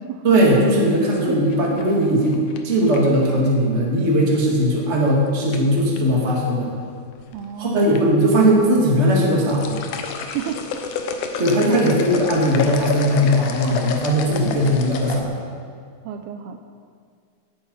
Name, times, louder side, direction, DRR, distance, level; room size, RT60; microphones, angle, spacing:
voice 1, 0.2-6.7 7.6-9.8 11.4-15.4, equal, 25° right, -3 dB, 1.7 m, -18 dB
sound 1, 1.1-3.2 4.8-5.1 5.5-6.0 6.9-7.5 7.8-8.0 8.4-8.5 9.2-15.2, left 6 dB, 80° left, 1.8 m, -29 dB
voice 2, 7.3-8.0 10.3-10.6 11.7-11.9 16.1-16.6, right 9 dB, 85° right, 6 dB, 2.3 m, -30 dB
18.0 x 8.2 x 5.5 m, 2.2 s
omnidirectional pair, 4.9 m